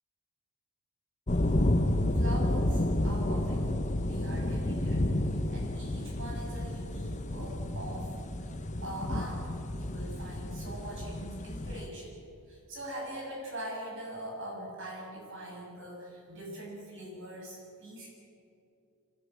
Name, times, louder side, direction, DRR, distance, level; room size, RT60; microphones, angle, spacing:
sound 1, 1.3-11.9, left 1 dB, 35° left, 1.0 m, -30 dB
voice 1, 2.2-3.6 4.0-8.1 8.4-8.5 8.8-9.4 9.7-12.1 12.5-18.1, right 1 dB, 55° right, -2 dB, 7.3 m, -42 dB
24.5 x 14.0 x 8.7 m, 2.5 s
head